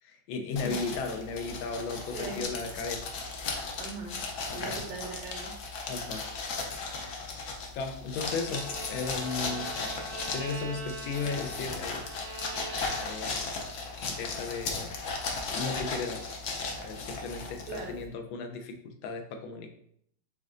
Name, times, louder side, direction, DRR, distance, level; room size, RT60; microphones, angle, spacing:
voice 1, 0.0-3.1 4.5-4.8 5.9-6.4 6.6-7.3 7.7-9.7 10.3-12.0 13.0-13.5 14.0-16.3 16.8-19.7, left 4 dB, 80° left, 5 dB, 1.4 m, -36 dB
sound 1, 0.6-18.1, left 3 dB, 60° left, 1.1 m, -36 dB
voice 2, 3.8-4.2 4.5-5.5 17.7-18.0, right 3 dB, 70° right, 1 dB, 1.5 m, -39 dB
Bowed string instrument, 8.3-13.5, right 4 dB, 90° right, 1.6 m, -43 dB
5.3 x 3.7 x 2.5 m, 0.67 s
omnidirectional pair, 2.2 m